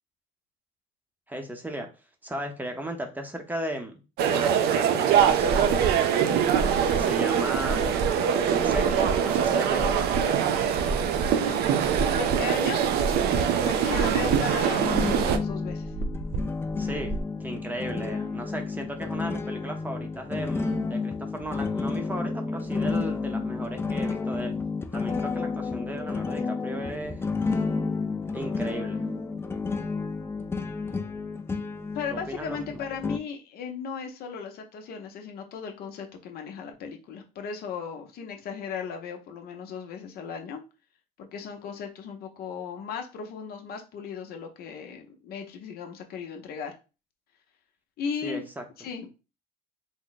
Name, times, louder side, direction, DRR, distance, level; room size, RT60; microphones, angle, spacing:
voice 1, 1.3-1.9 2.2-4.0 4.3-5.8 6.9-8.0 8.5-10.0 16.8-24.5 24.9-27.2 28.3-29.0 32.1-32.8 48.2-48.6, right 1 dB, 10° right, 4 dB, 0.7 m, -36 dB
sound 1, 4.2-15.4, right 8 dB, 75° right, 0.4 m, -23 dB
sound 2, 5.2-17.2, right 2 dB, 40° right, 0.8 m, -33 dB
voice 2, 12.2-12.8 13.3-15.9 31.9-40.6 41.2-46.8 48.0-48.5 48.8-49.1, left 6 dB, 65° left, 4 dB, 0.7 m, -36 dB
sound 3, 14.8-33.2, left 4 dB, 15° left, 0.3 m, -31 dB
3.5 x 2.1 x 3.9 m, 0.31 s
cardioid pair, 110°, 17 cm